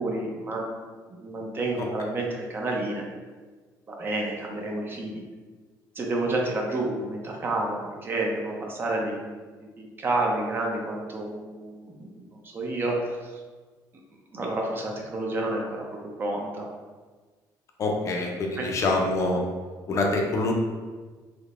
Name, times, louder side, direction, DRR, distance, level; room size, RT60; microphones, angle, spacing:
voice 1, 0.0-3.1 3.9-5.2 6.0-9.3 9.6-13.3 14.3-15.9 16.2-16.7 18.6-18.9, right 2 dB, 30° right, 0 dB, 0.5 m, -30 dB
voice 2, 17.8-19.4 19.9-20.5, left 2 dB, 45° left, 1 dB, 0.5 m, -25 dB
3.5 x 2.8 x 2.4 m, 1.4 s
cardioid pair, 140°, 7 cm